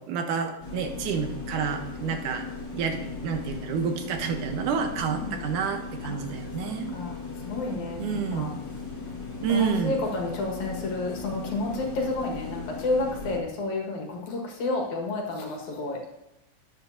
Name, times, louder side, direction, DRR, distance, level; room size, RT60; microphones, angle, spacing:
voice 1, 0.0-2.4 2.7-7.0 8.0-8.5 9.4-10.0, right 6 dB, 75° right, 5 dB, 2.3 m, -29 dB
sound 1, 0.6-13.4, left 4 dB, 30° left, 2.6 m, -38 dB
voice 2, 6.6-8.5 9.5-16.0, left 2 dB, 60° left, 1 dB, 2.7 m, -31 dB
12.5 x 10.0 x 2.7 m, 0.92 s
omnidirectional pair, 4.0 m